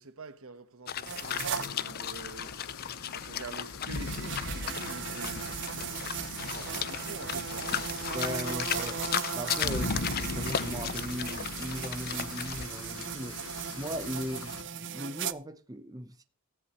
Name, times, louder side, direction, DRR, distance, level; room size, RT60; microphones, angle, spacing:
voice 1, 0.0-2.6 3.1-5.6 6.4-7.9, right 3 dB, 75° right, 1.3 m, -46 dB
sound 1, 0.9-12.7, left 9 dB, 45° left, 0.5 m, -36 dB
sound 2, 1.1-1.7 3.9-15.3, right 8 dB, 60° right, 0.6 m, -37 dB
sound 3, 1.2-14.6, left 3 dB, 80° left, 1.0 m, -40 dB
voice 2, 8.1-9.0 9.3-13.4 13.8-16.2, equal, 15° right, 0.9 m, -38 dB
15.5 x 10.5 x 3.1 m
head